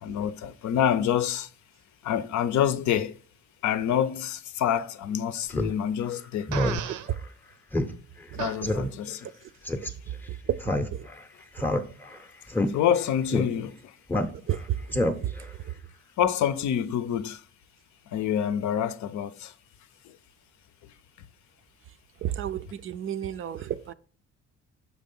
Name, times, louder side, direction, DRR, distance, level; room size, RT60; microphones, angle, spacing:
voice 1, 0.0-1.5 2.0-3.1 3.6-6.5 8.3-9.2 12.7-13.7 16.2-17.4 18.1-19.5, left 9 dB, 70° left, 0.6 m, -27 dB
Speech synthesizer, 5.5-5.7 6.1-6.2 6.5-6.8 7.1-7.2 7.7-7.9 8.2-8.3 8.6-8.9 9.6-9.9 10.6-11.2 11.6-12.2 12.5-12.7 13.3-13.4 14.1-14.6 14.9-15.4, left 1 dB, 5° left, 0.6 m, -26 dB
Fart, 6.5-7.1 8.4-8.6, right 10 dB, 80° right, 0.7 m, -33 dB
voice 2, 22.2-23.9, right 11 dB, 45° right, 0.4 m, -31 dB
6.6 x 4.9 x 5.3 m
cardioid pair, 150°, 30 cm